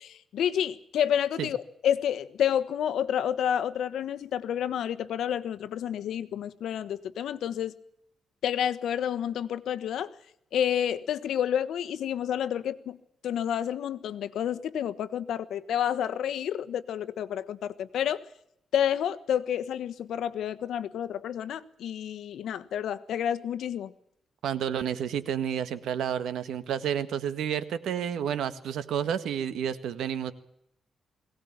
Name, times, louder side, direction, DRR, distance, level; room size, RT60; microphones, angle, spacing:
voice 1, 0.0-1.6 1.8-7.7 8.4-10.1 10.5-13.0 13.2-18.2 18.7-23.9, left 9 dB, 80° left, 12 dB, 1.3 m, -29 dB
voice 2, 24.4-30.3, right 9 dB, 90° right, 12 dB, 1.7 m, -30 dB
21.5 x 18.0 x 8.9 m, 0.76 s
cardioid pair, 135°, 0 cm